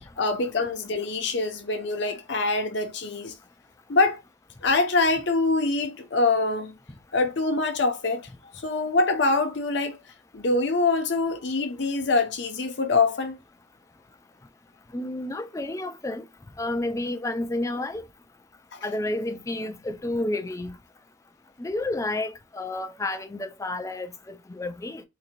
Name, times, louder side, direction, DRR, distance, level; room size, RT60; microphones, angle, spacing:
voice 1, 0.2-3.3 3.9-4.2 4.6-6.7 7.1-8.2 8.6-10.0 10.3-13.4 18.7-18.8, left 3 dB, 60° left, 0.7 m, -24 dB
voice 2, 14.9-16.2 16.6-18.0 18.8-20.8 21.6-25.0, left 2 dB, 15° left, 0.3 m, -30 dB
3.8 x 2.6 x 2.9 m
head